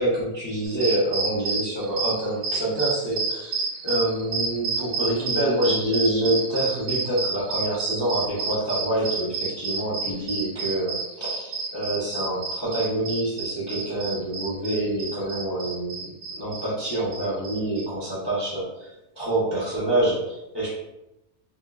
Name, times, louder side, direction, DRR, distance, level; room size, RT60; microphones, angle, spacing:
voice 1, 0.0-3.6 3.8-16.1 16.4-20.8, right 1 dB, 35° left, -8 dB, 0.4 m, -26 dB
sound 1, 0.6-17.8, right 4 dB, 80° right, 1.2 m, -29 dB
3.6 x 2.2 x 2.3 m, 0.89 s
omnidirectional pair, 1.8 m